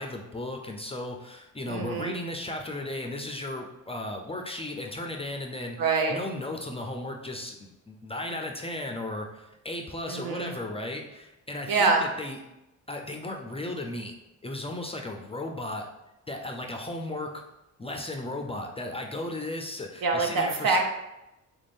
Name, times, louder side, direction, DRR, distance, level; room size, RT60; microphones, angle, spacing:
voice 1, 0.0-12.4 12.9-14.1 14.4-15.9 16.3-17.4 17.8-20.8, left 1 dB, 15° left, 2 dB, 0.4 m, -35 dB
voice 2, 1.7-2.2 5.8-6.2 10.1-10.5 11.7-12.0 20.0-20.9, right 4 dB, 70° right, 2 dB, 0.8 m, -25 dB
3.5 x 2.5 x 3.4 m, 0.93 s
cardioid pair, 80°, 35 cm